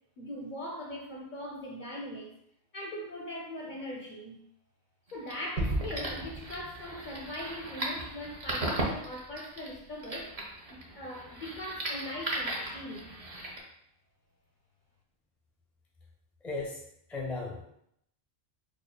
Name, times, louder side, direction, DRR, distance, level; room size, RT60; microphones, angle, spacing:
voice 1, 0.2-2.3 2.7-4.4 5.1-10.3 10.7-13.1, left 1 dB, 55° left, -1 dB, 0.6 m, -40 dB
sound 1, 5.1-13.6, right 1 dB, 40° right, 0.7 m, -38 dB
Gunshot gunfire / Fireworks / Boom, 5.6-10.4, right 1 dB, 65° right, 0.9 m, -39 dB
voice 2, 10.9-11.3 16.4-16.8 17.1-17.6, left 3 dB, ahead, -2 dB, 0.4 m, -37 dB
4.9 x 2.4 x 2.2 m, 0.74 s
omnidirectional pair, 1.1 m